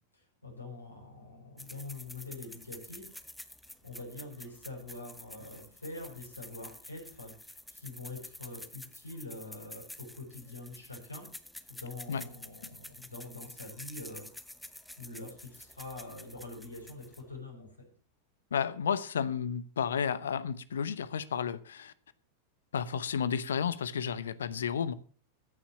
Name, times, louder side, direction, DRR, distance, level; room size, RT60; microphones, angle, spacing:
voice 1, 0.1-3.0 3.8-11.3 11.7-14.3 14.7-17.9, left 2 dB, 85° left, 5.6 m, -45 dB
sound 1, 1.6-17.4, left 1 dB, 5° left, 1.0 m, -49 dB
voice 2, 18.5-21.9 22.7-24.9, left 7 dB, 65° left, 0.9 m, -32 dB
15.0 x 7.2 x 7.1 m
figure-of-eight pair, 90°, 0 cm